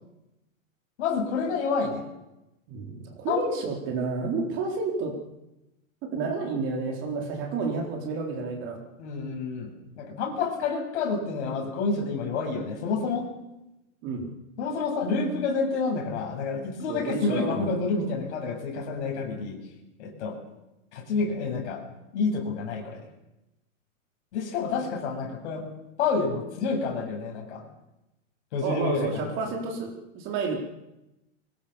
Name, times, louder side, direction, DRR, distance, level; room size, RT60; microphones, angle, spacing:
voice 1, 1.0-2.1 3.3-3.5 9.0-13.3 14.6-19.6 20.0-20.4 20.9-21.8 22.1-23.0 24.3-25.7 26.0-27.6 28.5-29.3, left 4 dB, 55° left, 1 dB, 8.0 m, -29 dB
voice 2, 2.7-5.2 6.0-8.8 14.0-14.3 16.9-18.0 28.6-30.6, right 4 dB, 30° right, 2 dB, 4.0 m, -30 dB
24.0 x 20.5 x 7.3 m, 0.94 s
supercardioid pair, 170°, 40 cm